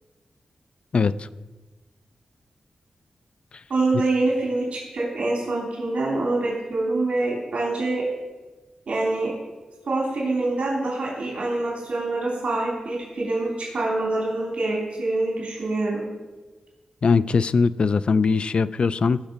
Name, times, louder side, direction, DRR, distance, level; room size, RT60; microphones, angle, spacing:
voice 1, 0.9-1.3 3.5-3.6 17.0-19.2, left 4 dB, 50° left, 16 dB, 0.3 m, -21 dB
voice 2, 3.7-8.0 8.9-9.3 9.9-16.0, right 2 dB, 65° right, -3 dB, 3.2 m, -25 dB
17.5 x 6.1 x 5.1 m, 1.3 s
wide cardioid pair, 115°, 2 cm